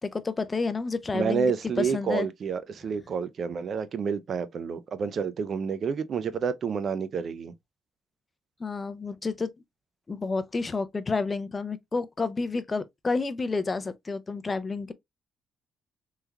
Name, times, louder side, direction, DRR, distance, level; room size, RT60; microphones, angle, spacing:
voice 1, 0.0-2.3 8.6-9.5 10.1-14.9, left 4 dB, 30° left, 0.4 m, -30 dB
voice 2, 1.1-7.5, right 6 dB, 55° right, 0.4 m, -29 dB
3.4 x 3.2 x 2.2 m
cardioid pair, 90°, 0 cm